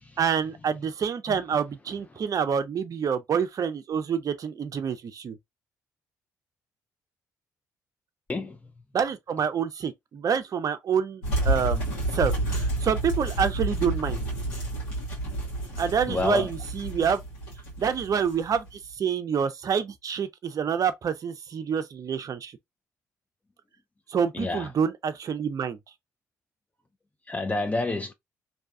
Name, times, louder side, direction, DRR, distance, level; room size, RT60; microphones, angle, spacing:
voice 1, 0.2-5.4 8.9-11.8 12.1-14.2 15.8-17.2 17.8-22.6 24.1-25.8, right 7 dB, 45° right, 0.5 m, -27 dB
sound 1, 11.2-18.8, right 1 dB, 80° left, 1.2 m, -29 dB
voice 2, 16.1-16.5 24.3-24.7 27.3-28.1, left 2 dB, 20° left, 0.4 m, -29 dB
2.6 x 2.3 x 2.4 m
hypercardioid pair, 45°, 8 cm